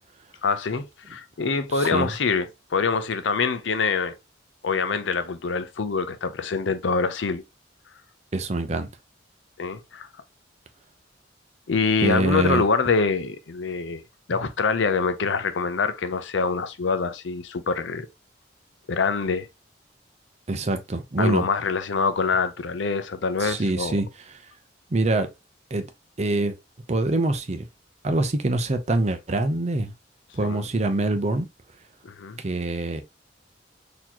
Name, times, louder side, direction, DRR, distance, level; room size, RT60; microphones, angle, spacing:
voice 1, 0.4-2.5 2.7-4.1 4.6-7.4 9.6-10.1 11.7-14.0 14.3-18.1 18.9-19.5 21.2-24.0 30.4-30.6 32.2-32.4, left 4 dB, 85° left, 0.6 m, -25 dB
voice 2, 1.7-2.1 8.3-8.9 12.0-12.7 20.5-21.5 23.4-24.4 24.9-25.3 25.7-25.9 26.2-26.5 26.9-27.6 28.0-29.9 30.3-31.5 32.4-33.0, right 2 dB, 40° right, 0.6 m, -25 dB
4.1 x 2.9 x 2.9 m
head